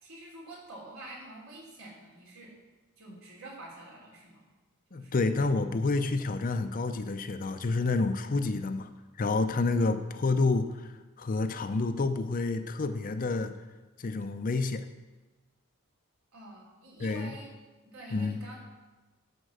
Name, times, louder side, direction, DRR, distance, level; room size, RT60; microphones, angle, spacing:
voice 1, 0.0-2.5 3.0-4.5 4.9-5.3 16.3-17.5 17.8-18.6, right 1 dB, 70° right, -4 dB, 3.5 m, -47 dB
voice 2, 4.9-8.9 9.2-10.9 11.2-13.5 14.0-14.8 17.0-17.3 18.1-18.4, left 3 dB, 40° left, 9 dB, 0.5 m, -29 dB
11.0 x 4.4 x 6.6 m, 1.2 s
head